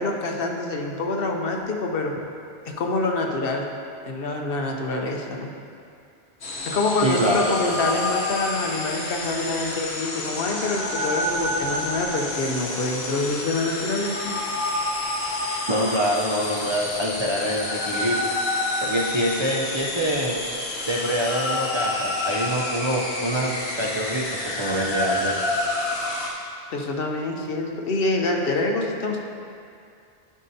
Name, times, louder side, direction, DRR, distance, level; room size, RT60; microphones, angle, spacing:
voice 1, 0.0-2.1 2.6-3.6 4.1-5.5 6.7-14.2 26.7-29.2, left 2 dB, 65° left, 2 dB, 0.9 m, -26 dB
sound 1, 6.4-26.3, left 2 dB, 80° left, 1.3 m, -28 dB
voice 2, 7.0-7.4 7.8-8.0 15.7-18.2 18.8-20.4 20.9-23.5 23.8-25.3, equal, 35° right, -4 dB, 0.5 m, -25 dB
11.0 x 5.4 x 2.7 m, 2.4 s
omnidirectional pair, 1.1 m